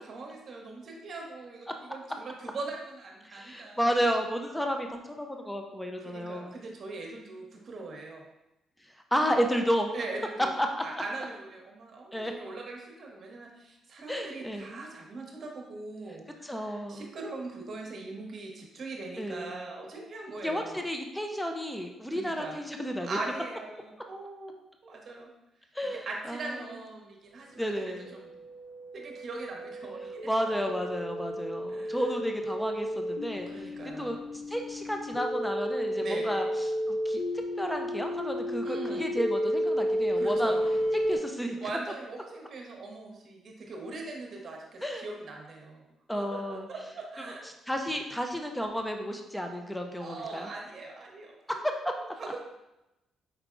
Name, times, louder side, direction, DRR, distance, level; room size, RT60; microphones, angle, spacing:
voice 1, 0.0-3.9 6.0-8.3 9.9-10.5 10.8-20.8 22.1-22.6 23.0-25.3 26.1-28.3 28.9-30.6 31.7-32.0 33.3-34.2 36.0-36.3 38.6-39.0 40.2-40.8 41.6-45.8 46.1-47.5 50.0-51.6 51.9-52.4, right 3 dB, 50° right, 0 dB, 1.0 m, -41 dB
voice 2, 3.2-6.6 9.1-9.9 10.6-10.8 12.1-12.3 14.1-14.8 16.4-17.1 19.2-19.5 20.4-23.2 25.7-26.7 27.6-28.2 30.3-33.5 34.0-34.2 34.5-37.2 37.6-40.6 40.9-41.6 44.8-45.0 46.1-46.7 47.7-50.5 51.6-51.9, equal, 5° left, 3 dB, 0.5 m, -32 dB
sound 1, 27.9-41.2, equal, 70° left, 0.6 m, -32 dB
4.9 x 3.4 x 2.5 m, 0.93 s
cardioid pair, 90°, 0 cm